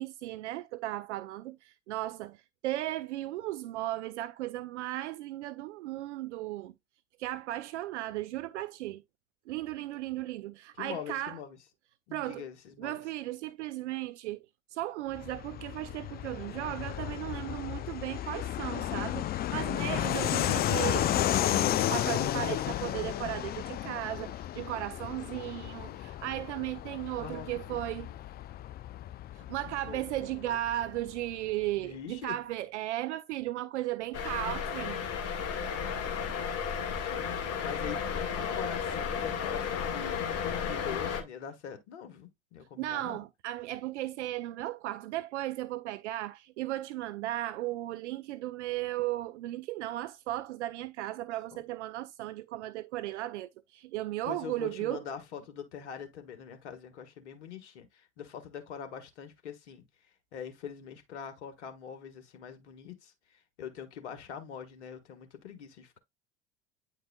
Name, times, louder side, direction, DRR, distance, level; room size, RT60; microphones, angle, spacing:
voice 1, 0.0-6.7 7.2-9.0 9.5-11.4 12.1-12.4 12.8-14.5 14.7-28.1 29.4-35.0 42.8-55.0, right 15 dB, 75° right, 0.5 m, -36 dB
voice 2, 10.7-11.6 12.1-13.0 21.1-21.4 27.2-28.2 29.9-30.6 31.8-32.4 36.6-37.3 37.6-43.2 51.5-51.6 54.2-59.8 60.3-63.1 63.6-66.0, left 8 dB, 75° left, 1.7 m, -44 dB
Fixed-wing aircraft airplane, 15.1-31.3, left 13 dB, 30° left, 0.4 m, -33 dB
sound 1, 34.1-41.2, left 7 dB, 45° left, 1.7 m, -33 dB
9.3 x 4.6 x 2.2 m
hypercardioid pair, 75°, 35 cm